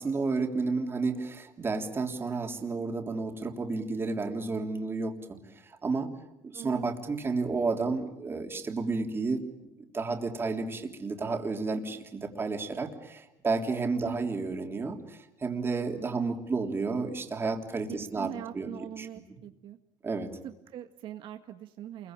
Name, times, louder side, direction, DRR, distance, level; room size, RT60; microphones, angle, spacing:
voice 1, 0.0-6.1 6.4-9.4 9.8-18.7 19.0-19.1 20.0-20.3, right 4 dB, 25° right, 4 dB, 3.4 m, -31 dB
voice 2, 6.5-6.9 14.0-14.3 17.9-19.8 20.4-22.1, right 11 dB, 55° right, 6 dB, 1.8 m, -42 dB
29.0 x 23.0 x 9.0 m, 0.90 s
cardioid pair, 115°, 10 cm